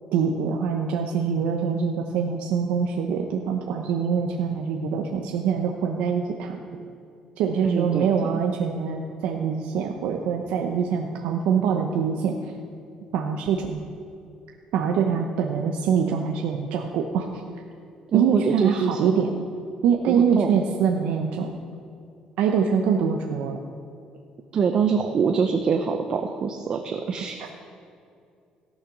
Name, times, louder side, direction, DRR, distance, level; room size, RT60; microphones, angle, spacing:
voice 1, 0.1-6.6 7.4-12.3 13.1-13.8 14.7-17.3 18.1-19.3 19.8-21.5 22.4-23.6, right 6 dB, 90° right, 2 dB, 0.8 m, -24 dB
voice 2, 7.6-8.4 18.1-19.2 20.1-20.6 24.5-27.4, right 6 dB, 35° right, 5 dB, 0.6 m, -25 dB
16.5 x 6.6 x 6.0 m, 2.5 s
cardioid pair, 160°, 2 cm